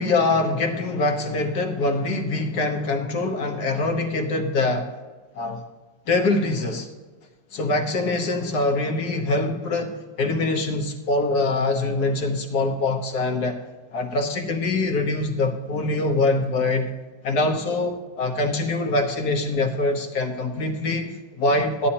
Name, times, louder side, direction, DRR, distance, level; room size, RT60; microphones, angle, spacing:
voice 1, 0.0-4.9 5.3-5.6 6.1-6.9 7.5-13.6 13.9-16.9 17.2-21.9, left 2 dB, 60° left, 4 dB, 1.6 m, -24 dB
14.0 x 11.0 x 2.8 m, 1.3 s
omnidirectional pair, 2.0 m